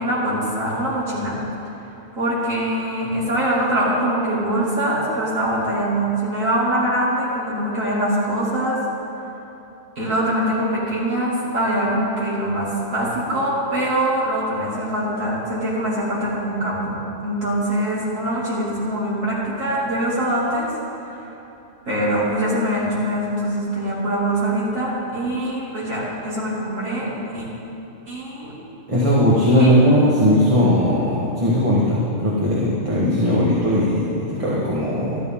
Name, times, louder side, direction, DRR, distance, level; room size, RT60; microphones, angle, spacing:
voice 1, 0.0-1.4 2.1-8.8 10.0-20.7 21.0-21.3 21.8-27.5 28.1-28.5 29.6-29.7, right 1 dB, 90° right, -8 dB, 3.3 m, -23 dB
voice 2, 28.9-35.2, left 1 dB, 25° right, -7 dB, 1.6 m, -18 dB
13.5 x 13.0 x 3.8 m, 3.0 s
omnidirectional pair, 1.3 m